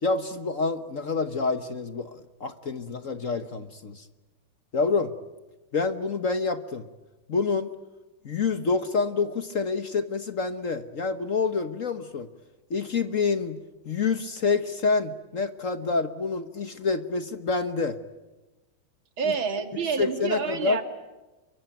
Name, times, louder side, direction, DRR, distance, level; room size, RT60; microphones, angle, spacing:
voice 1, 0.0-4.0 4.7-5.1 5.7-6.8 7.3-7.7 8.2-12.3 12.7-18.0 19.2-19.3 20.0-20.8, left 4 dB, 45° left, 10 dB, 1.3 m, -27 dB
voice 2, 19.2-20.8, right 6 dB, 75° right, 7 dB, 3.1 m, -28 dB
27.5 x 23.5 x 9.2 m, 1.1 s
omnidirectional pair, 2.2 m